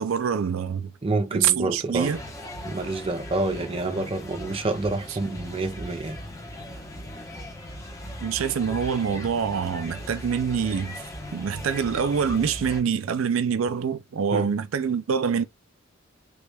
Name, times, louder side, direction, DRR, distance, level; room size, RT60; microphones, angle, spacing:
voice 1, 0.0-0.9 1.3-2.2 8.2-10.9 11.3-15.4, right 7 dB, 90° right, 0.4 m, -25 dB
voice 2, 1.0-2.1 2.6-6.2 14.3-14.5, right 2 dB, 30° right, 0.5 m, -28 dB
sound 1, 2.0-12.8, left 1 dB, 15° left, 0.8 m, -38 dB
3.4 x 2.3 x 3.3 m
head